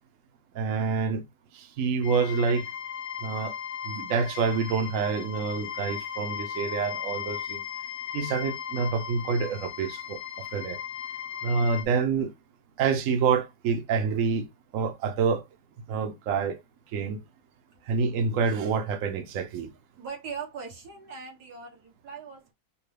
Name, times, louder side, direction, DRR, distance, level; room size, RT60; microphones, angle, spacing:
voice 1, 0.5-1.2 1.5-2.7 3.2-3.5 3.8-7.6 8.1-10.8 11.4-12.3 12.8-14.5 14.7-15.4 15.9-16.6 16.9-17.2 17.8-19.7, right 5 dB, 80° right, 0.7 m, -27 dB
sound 1, 2.0-11.8, left 8 dB, 65° left, 0.7 m, -37 dB
voice 2, 20.0-22.5, right 6 dB, 55° right, 1.8 m, -40 dB
5.0 x 2.2 x 3.2 m
omnidirectional pair, 2.2 m